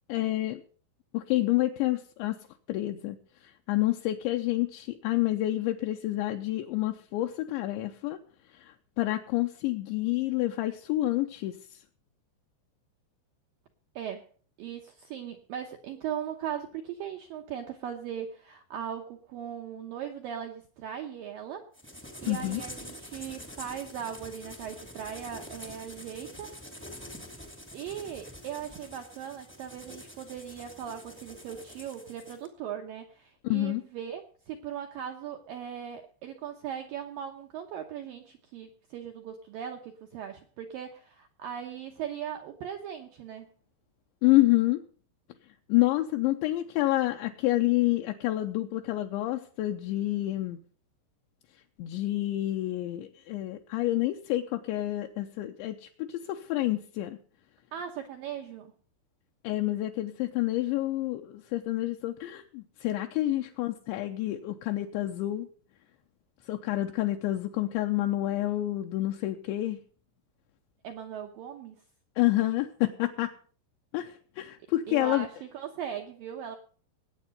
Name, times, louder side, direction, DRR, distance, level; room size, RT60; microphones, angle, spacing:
voice 1, 0.1-0.6 1.1-2.4 2.7-3.2 3.4-8.2 8.6-11.8 22.3-22.6 33.4-33.8 44.2-44.8 45.7-50.6 51.8-57.2 59.4-65.5 66.5-69.8 72.2-73.3 73.9-75.3, left 16 dB, 80° left, 4 dB, 2.9 m, -28 dB
voice 2, 14.0-14.3 14.6-21.7 22.2-26.5 27.7-43.5 57.7-58.7 70.8-71.8 74.9-76.6, right 9 dB, 80° right, 4 dB, 2.0 m, -39 dB
sound 1, 21.7-32.5, equal, 10° left, 0.5 m, -46 dB
19.5 x 8.7 x 5.3 m, 0.43 s
omnidirectional pair, 5.5 m